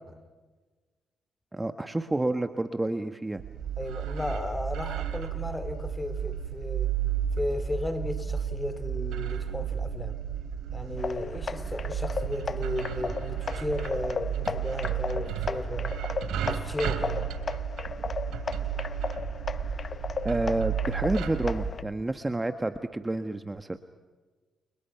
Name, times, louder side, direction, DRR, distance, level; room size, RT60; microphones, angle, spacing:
voice 1, 1.5-3.4 20.2-23.8, right 2 dB, 15° right, 1.5 m, -29 dB
sound 1, 3.4-21.7, right 8 dB, 85° right, 3.1 m, -33 dB
voice 2, 3.8-6.9 7.4-10.2 10.7-15.9 16.5-17.3, left 1 dB, 15° left, 3.3 m, -35 dB
sound 2, 11.0-21.8, left 5 dB, 40° left, 0.8 m, -36 dB
30.0 x 29.0 x 5.9 m
cardioid pair, 80°, 0 cm